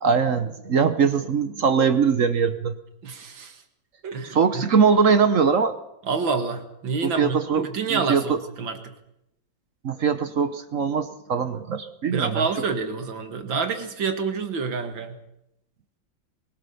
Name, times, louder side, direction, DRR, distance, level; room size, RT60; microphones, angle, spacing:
voice 1, 0.0-2.8 4.3-5.8 7.0-8.4 9.8-12.5, right 6 dB, 50° right, 11 dB, 1.1 m, -21 dB
voice 2, 3.0-3.6 4.0-4.7 6.1-8.9 12.1-15.2, right 5 dB, 80° right, 7 dB, 2.6 m, -28 dB
23.0 x 17.0 x 6.9 m, 0.84 s
omnidirectional pair, 2.1 m